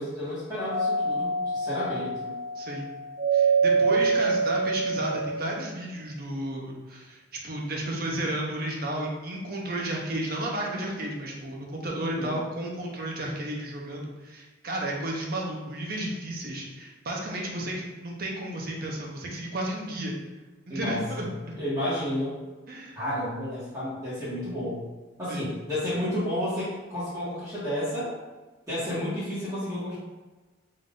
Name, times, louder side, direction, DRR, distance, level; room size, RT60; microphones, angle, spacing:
voice 1, 0.0-2.3 12.0-12.4 20.7-21.2 21.6-22.4 22.9-24.8 25.2-28.1 28.7-30.0, left 1 dB, 15° right, -12 dB, 1.2 m, -31 dB
Doorbell, 0.7-5.5, right 4 dB, 65° right, 1.2 m, -26 dB
voice 2, 2.6-2.9 3.3-20.2 20.7-21.6 22.7-23.0 25.3-25.5, right 1 dB, 50° right, -1 dB, 0.7 m, -33 dB
3.8 x 2.5 x 3.7 m, 1.2 s
head